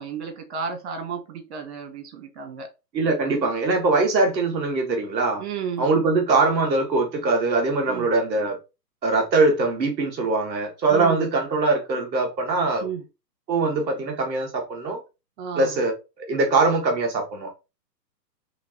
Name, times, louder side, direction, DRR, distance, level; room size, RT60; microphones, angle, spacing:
voice 1, 0.0-2.7 5.4-5.9 7.9-8.1 10.9-11.2 12.8-13.0 15.4-15.7, right 6 dB, 40° right, 1.2 m, -32 dB
voice 2, 2.9-5.4 5.8-8.6 9.0-12.9 13.5-15.0 15.6-17.5, right 3 dB, 5° right, 0.5 m, -22 dB
5.0 x 3.0 x 2.9 m
hypercardioid pair, 160°, 50 cm